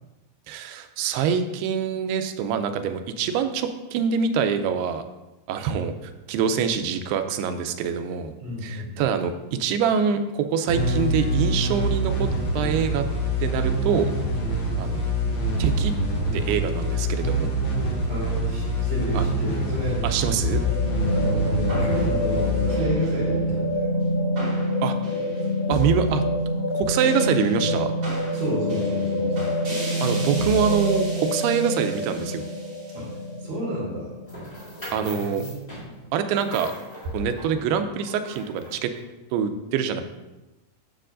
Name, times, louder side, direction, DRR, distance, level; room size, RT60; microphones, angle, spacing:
voice 1, 0.5-5.0 5.5-8.3 8.6-13.1 13.4-14.1 14.8-15.0 15.6-15.9 16.3-17.5 19.1-19.3 20.0-20.6 24.8-25.0 25.7-26.2 26.7-27.9 30.0-32.5 34.9-35.4 36.1-36.7 37.1-38.9 39.3-40.0, right 7 dB, 90° right, 8 dB, 2.6 m, -25 dB
voice 2, 8.4-9.0 18.0-20.0 21.1-23.9 28.3-29.5 32.9-34.1 34.9-35.7, equal, 60° right, -7 dB, 4.1 m, -32 dB
sound 1, 10.7-24.0, right 1 dB, 75° left, 1.2 m, -25 dB
sound 2, 20.4-34.8, left 1 dB, 35° right, 3.0 m, -26 dB
sound 3, 34.3-39.0, equal, 25° left, 1.2 m, -41 dB
9.0 x 6.7 x 2.5 m, 1.0 s
omnidirectional pair, 4.5 m